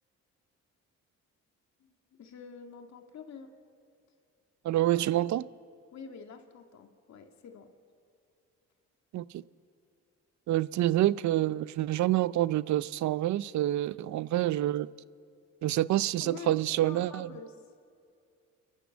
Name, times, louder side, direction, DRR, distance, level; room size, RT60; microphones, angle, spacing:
voice 1, 1.8-3.5 5.9-7.7 16.2-17.6, left 6 dB, 65° left, 4 dB, 2.2 m, -47 dB
voice 2, 4.6-5.4 9.1-9.4 10.5-14.9 15.6-17.3, right 14 dB, 70° right, 19 dB, 0.6 m, -27 dB
29.5 x 12.0 x 7.6 m, 2.4 s
cardioid pair, 90°, 30 cm